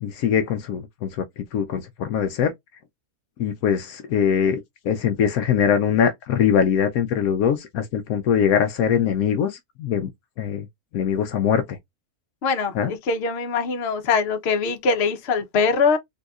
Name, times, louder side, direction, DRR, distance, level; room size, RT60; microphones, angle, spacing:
voice 1, 0.0-1.2 1.5-2.5 3.4-4.6 4.8-10.1 10.4-10.7 10.9-11.8 12.7-12.9, left 8 dB, 75° left, 1.0 m, -22 dB
voice 2, 12.4-16.0, left 5 dB, 50° left, 0.9 m, -22 dB
3.9 x 2.8 x 2.3 m
omnidirectional pair, 1.6 m